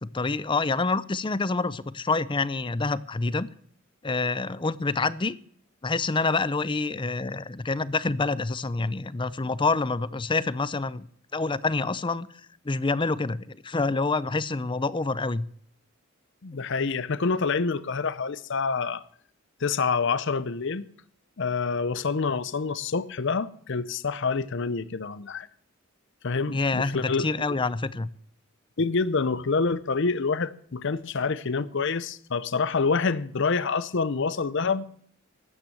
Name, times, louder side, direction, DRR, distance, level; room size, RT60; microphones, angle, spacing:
voice 1, 0.0-3.5 4.0-5.4 5.8-11.1 11.3-12.3 12.6-15.4 26.5-28.1, left 3 dB, 25° left, 0.6 m, -27 dB
voice 2, 16.4-19.0 19.6-20.9 21.4-25.5 26.2-27.6 28.8-34.9, left 4 dB, 60° left, 0.7 m, -27 dB
13.5 x 9.1 x 7.8 m
head